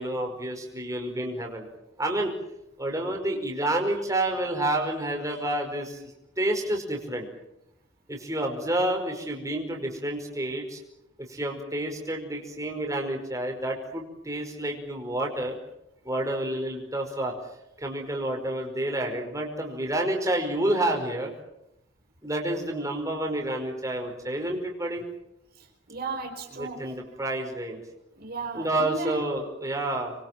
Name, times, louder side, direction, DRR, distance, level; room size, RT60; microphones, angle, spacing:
voice 1, 0.0-1.7 2.0-2.3 2.8-6.0 6.4-7.3 8.1-10.8 11.3-15.6 16.0-17.3 17.8-21.3 22.2-25.0 26.6-27.8 28.5-30.1, right 1 dB, 15° right, 1 dB, 5.3 m, -29 dB
voice 2, 25.5-26.9 28.1-29.2, right 3 dB, 55° right, 2 dB, 4.8 m, -35 dB
27.0 x 23.5 x 7.8 m, 0.81 s
head